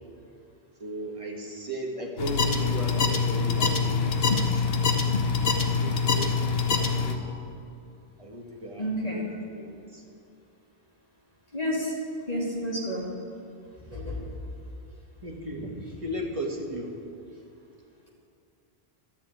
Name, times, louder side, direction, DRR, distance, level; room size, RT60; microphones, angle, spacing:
voice 1, 0.8-4.8 5.6-7.4 8.2-10.0 15.2-16.9, equal, 30° right, 0 dB, 1.8 m, -36 dB
sound 1, 2.2-7.2, left 5 dB, 70° left, 1.2 m, -25 dB
voice 2, 8.8-9.2 11.5-11.9 12.3-13.1 13.9-14.2, equal, 40° left, -4 dB, 2.9 m, -30 dB
12.5 x 7.3 x 9.2 m, 2.6 s
omnidirectional pair, 1.1 m